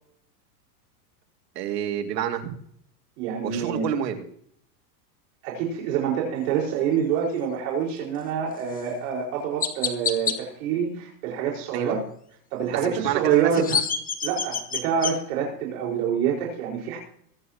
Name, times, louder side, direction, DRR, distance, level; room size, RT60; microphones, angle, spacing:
voice 1, 1.6-2.5 3.4-4.2 11.7-12.0 12.8-13.8, right 10 dB, 80° right, 5 dB, 2.6 m, -28 dB
voice 2, 3.2-3.9 5.4-12.0 12.5-13.8 14.2-17.0, right 7 dB, 60° right, -2 dB, 5.1 m, -26 dB
Chirp tweet, 8.7-8.9 9.6-10.4 13.3-15.1, left 6 dB, 15° left, 1.4 m, -27 dB
23.0 x 9.5 x 3.0 m, 0.65 s
supercardioid pair, 140°, 49 cm